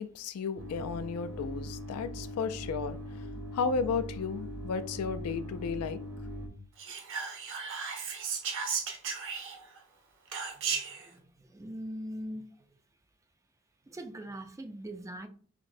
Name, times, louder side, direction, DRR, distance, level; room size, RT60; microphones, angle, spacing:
voice 1, 0.0-3.2 3.5-6.0, left 5 dB, 75° left, 0.4 m, -34 dB
sound 1, 0.6-6.5, equal, 80° right, 1.0 m, -41 dB
Whispering, 6.8-9.8 10.3-11.1, right 5 dB, 60° right, 0.7 m, -35 dB
voice 2, 10.6-12.5 13.9-15.3, equal, 15° right, 0.3 m, -42 dB
5.7 x 2.0 x 2.6 m
head